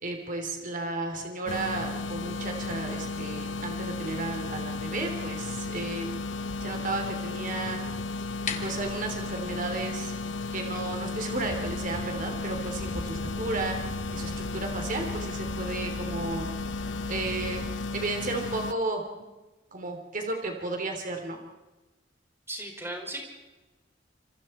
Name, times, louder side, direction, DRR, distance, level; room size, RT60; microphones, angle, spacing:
voice 1, 0.0-6.1 6.6-7.8 8.6-10.1 10.5-13.8 14.1-16.5 17.1-17.6 17.9-19.0 19.7-21.4, right 2 dB, 45° right, 3 dB, 3.4 m, -33 dB
sound 1, 1.5-18.7, left 3 dB, 80° left, 0.9 m, -34 dB
sound 2, 8.2-14.1, left 6 dB, 45° left, 2.5 m, -44 dB
sound 3, 11.4-18.1, equal, 20° left, 1.7 m, -41 dB
voice 2, 22.5-23.2, right 1 dB, 15° right, 1 dB, 5.5 m, -36 dB
27.5 x 26.5 x 4.5 m, 1.1 s
head